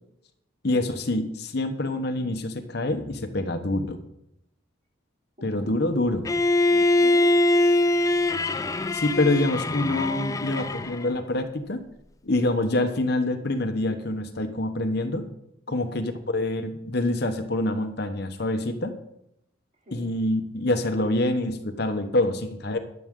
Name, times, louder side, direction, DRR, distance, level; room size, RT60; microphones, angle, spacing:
voice 1, 0.6-4.0 5.4-6.3 8.9-11.8 12.2-15.3 15.7-19.0 19.9-22.8, left 2 dB, 55° left, 7 dB, 1.0 m, -26 dB
voice 2, 5.4-5.7 6.7-7.7 15.7-16.0 19.8-20.2, equal, 40° right, -1 dB, 3.2 m, -45 dB
Bowed string instrument, 6.2-11.2, left 1 dB, 15° left, 0.4 m, -23 dB
21.5 x 7.4 x 3.7 m, 0.79 s
head